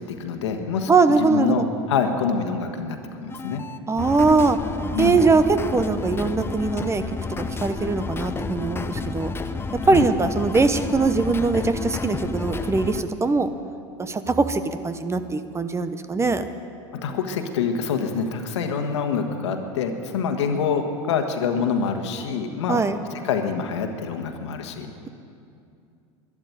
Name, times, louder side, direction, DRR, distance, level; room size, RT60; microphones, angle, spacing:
voice 1, 0.1-3.6 4.9-5.2 9.9-10.1 16.9-22.8 23.2-24.9, left 6 dB, 80° left, 5 dB, 1.5 m, -26 dB
voice 2, 0.9-1.6 3.9-4.6 5.0-7.0 7.3-9.3 9.9-13.5 14.0-16.5 22.7-23.0, right 4 dB, 20° right, 10 dB, 0.9 m, -21 dB
sound 1, 3.3-13.0, left 3 dB, 15° left, 0.7 m, -30 dB
12.0 x 10.5 x 9.2 m, 2.5 s
hypercardioid pair, 85°, 15 cm